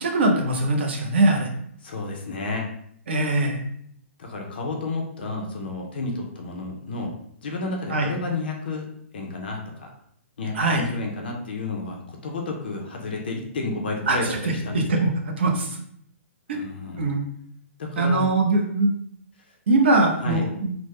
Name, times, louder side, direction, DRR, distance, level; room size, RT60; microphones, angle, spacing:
voice 1, 0.0-1.5 3.1-3.6 7.9-8.1 10.5-10.9 14.1-14.2 14.7-15.8 16.5-16.6 17.0-17.3 18.0-18.9 19.7-20.7, right 2 dB, 50° right, 1 dB, 0.6 m, -21 dB
voice 2, 1.8-2.7 4.2-7.1 7.4-8.9 9.1-9.9 10.4-15.0 16.5-17.1 17.8-18.2 20.2-20.4, left 3 dB, 45° left, 1 dB, 0.5 m, -31 dB
3.4 x 2.0 x 3.1 m, 0.66 s
hypercardioid pair, 180°, 8 cm